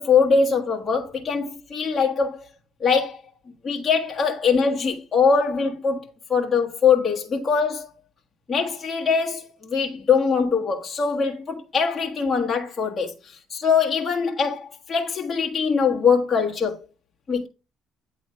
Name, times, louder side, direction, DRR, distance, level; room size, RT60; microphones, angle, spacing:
voice 1, 0.0-2.4 2.8-3.2 3.6-6.0 6.3-7.9 8.5-13.1 13.5-16.8 17.3-17.5, left 5 dB, 25° left, 1.4 m, -22 dB
8.7 x 3.2 x 4.4 m
cardioid pair, 100°, 0 cm